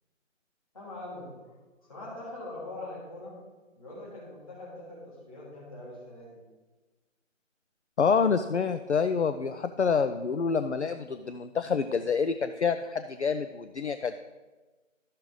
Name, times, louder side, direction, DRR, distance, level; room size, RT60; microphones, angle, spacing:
voice 1, 0.7-1.3 1.8-3.3 3.8-6.4, left 2 dB, 25° left, -6 dB, 2.9 m, -42 dB
voice 2, 8.0-14.2, left 5 dB, 60° left, 9 dB, 0.5 m, -27 dB
12.0 x 6.5 x 3.8 m, 1.2 s
figure-of-eight pair, 170°, 39 cm